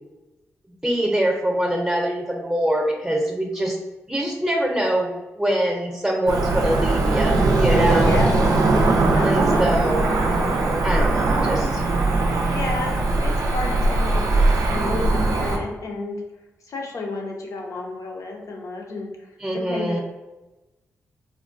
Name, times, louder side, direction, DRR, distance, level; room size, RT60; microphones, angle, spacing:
voice 1, 0.8-3.8 4.1-8.1 9.2-10.0 10.8-11.8 19.4-20.0, right 1 dB, 5° right, 0 dB, 0.7 m, -24 dB
Cricket / Motor vehicle (road), 6.3-15.6, right 2 dB, 80° right, 0.5 m, -20 dB
voice 2, 8.0-8.4 9.1-9.9 12.5-14.3 14.7-16.2 16.6-19.3 19.7-20.0, left 2 dB, 70° left, 0 dB, 0.6 m, -31 dB
3.5 x 2.1 x 2.5 m, 1.1 s
supercardioid pair, 50°, 6 cm